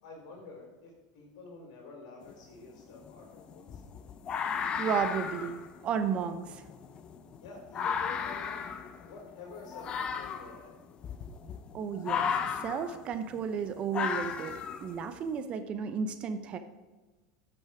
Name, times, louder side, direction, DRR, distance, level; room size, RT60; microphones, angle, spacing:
voice 1, 0.0-3.8 7.4-8.6 9.0-10.8, left 4 dB, 75° left, -1 dB, 3.5 m, -48 dB
sound 1, 2.2-2.3 2.7-15.3, left 7 dB, 30° left, 0.6 m, -35 dB
voice 2, 4.8-6.6 11.7-16.6, right 6 dB, 35° right, 10 dB, 0.6 m, -33 dB
10.0 x 6.3 x 4.9 m, 1.2 s
supercardioid pair, 135°, 3 cm